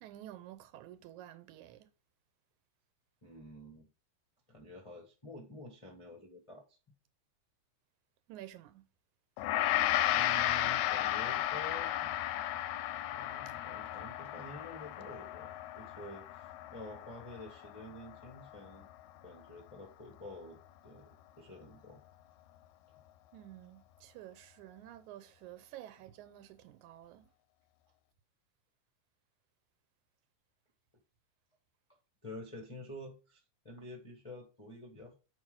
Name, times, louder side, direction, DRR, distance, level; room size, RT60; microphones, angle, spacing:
voice 1, 0.0-1.9 8.3-8.9 13.5-13.6 23.3-27.3, right 13 dB, 80° right, 2.1 m, -51 dB
voice 2, 3.2-3.9 4.5-6.8 10.1-11.9 12.9-18.9 19.2-20.6 20.8-21.1 21.4-22.0 32.2-35.1, left 1 dB, 60° left, 0.3 m, -49 dB
Gong, 9.4-18.8, left 13 dB, 80° left, 1.8 m, -34 dB
6.9 x 4.9 x 3.8 m
omnidirectional pair, 3.4 m